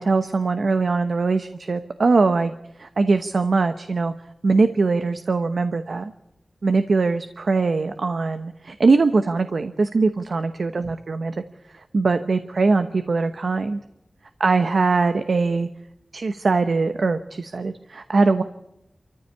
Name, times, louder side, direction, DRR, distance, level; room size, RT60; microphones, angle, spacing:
voice 1, 0.0-2.5 2.8-4.1 4.4-6.1 6.6-11.3 11.7-13.8 14.4-15.7 16.1-18.4, right 3 dB, 80° right, 9 dB, 1.0 m, -21 dB
27.0 x 14.5 x 8.4 m, 0.87 s
wide cardioid pair, 75°, 0 cm